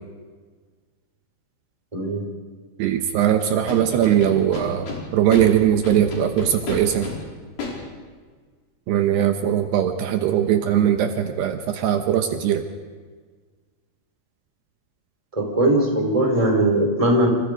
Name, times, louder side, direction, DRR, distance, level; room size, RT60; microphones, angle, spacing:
voice 1, 1.9-2.2 15.3-17.3, right 1 dB, 10° right, 1 dB, 4.4 m, -20 dB
voice 2, 2.8-7.1 8.9-12.6, right 10 dB, 75° right, 6 dB, 3.1 m, -20 dB
Scratching (performance technique), 3.7-5.0 5.3-5.4 5.8-7.1 7.6-7.7, left 4 dB, 65° left, 7.1 m, -30 dB
29.5 x 26.5 x 5.2 m, 1.5 s
omnidirectional pair, 5.0 m